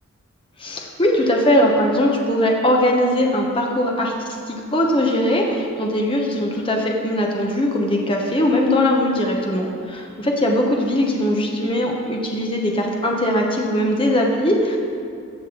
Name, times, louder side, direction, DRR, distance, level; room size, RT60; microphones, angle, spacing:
voice 1, 0.6-4.1 4.5-14.8, left 1 dB, 25° left, 0 dB, 1.0 m, -20 dB
15.0 x 6.3 x 3.9 m, 2.5 s
head